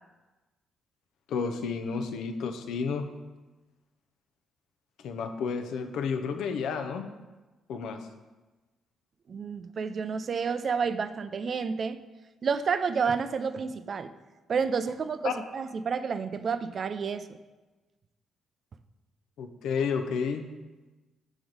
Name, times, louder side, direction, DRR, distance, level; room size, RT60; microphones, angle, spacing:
voice 1, 1.3-3.1 5.0-7.1 7.7-8.1 15.2-15.3 19.4-20.5, left 5 dB, 80° left, 7 dB, 0.5 m, -31 dB
voice 2, 9.3-12.0 12.4-14.1 14.5-17.3, right 5 dB, 50° right, 11 dB, 0.4 m, -30 dB
6.0 x 4.9 x 3.9 m, 1.2 s
cardioid pair, 90°, 0 cm